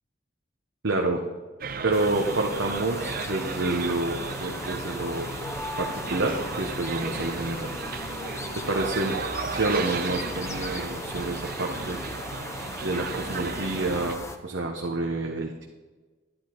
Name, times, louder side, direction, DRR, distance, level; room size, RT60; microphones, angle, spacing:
voice 1, 0.8-1.2 1.8-5.3 5.8-7.7 8.5-9.2 9.5-12.0 12.8-15.7, right 2 dB, 80° right, 0 dB, 1.2 m, -28 dB
sound 1, 1.6-14.2, right 5 dB, 50° right, 0.7 m, -35 dB
sound 2, 1.9-14.4, left 2 dB, 15° left, 0.8 m, -37 dB
12.0 x 11.0 x 4.7 m, 1.3 s
head